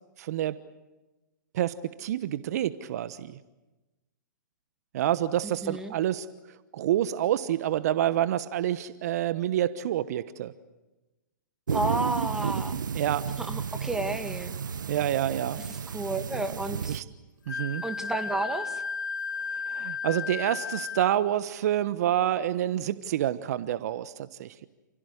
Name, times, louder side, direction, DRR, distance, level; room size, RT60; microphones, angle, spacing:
voice 1, 0.2-0.6 1.5-3.4 4.9-6.3 6.7-10.5 12.9-13.2 14.9-15.6 16.9-17.0 17.5-17.8 19.7-24.7, right 12 dB, 55° right, 14 dB, 1.2 m, -28 dB
voice 2, 5.4-5.9 11.7-12.8 13.4-14.5 15.6-17.0 17.8-18.8, right 2 dB, 5° right, 7 dB, 2.1 m, -32 dB
sound 1, 11.7-17.0, right 7 dB, 80° right, 1.1 m, -32 dB
Wind instrument woodwind instrument, 17.5-21.2, left 5 dB, 85° left, 0.9 m, -34 dB
29.5 x 16.5 x 9.9 m, 1.1 s
hypercardioid pair, 130°, 10 cm